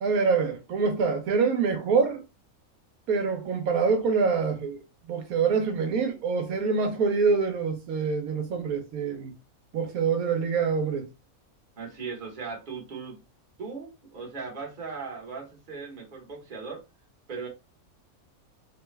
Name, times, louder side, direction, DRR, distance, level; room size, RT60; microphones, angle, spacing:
voice 1, 0.0-2.2 3.1-4.8 5.1-9.3 9.7-11.1, right 5 dB, 85° right, 1.2 m, -25 dB
voice 2, 11.8-13.2 13.6-16.8 17.3-17.5, right 5 dB, 35° right, 1.1 m, -38 dB
3.2 x 2.3 x 3.1 m
omnidirectional pair, 1.5 m